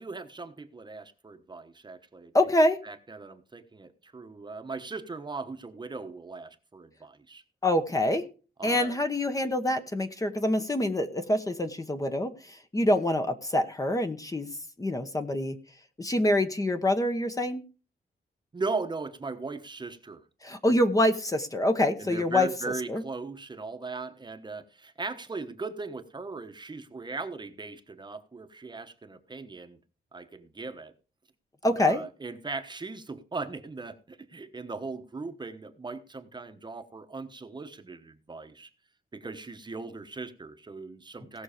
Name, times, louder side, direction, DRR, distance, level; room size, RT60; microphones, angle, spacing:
voice 1, 0.0-2.3 2.8-7.4 8.6-9.0 18.5-20.2 22.0-29.8 30.1-30.9 31.7-38.7 39.1-41.4, right 3 dB, 25° right, 1.2 m, -38 dB
voice 2, 2.3-2.8 7.6-8.2 8.6-12.3 12.7-14.5 14.8-15.6 16.0-17.6 20.4-22.5 22.9-23.0 31.6-32.0, left 1 dB, 20° left, 1.2 m, -25 dB
17.5 x 6.3 x 5.1 m
wide cardioid pair, 135°, 18 cm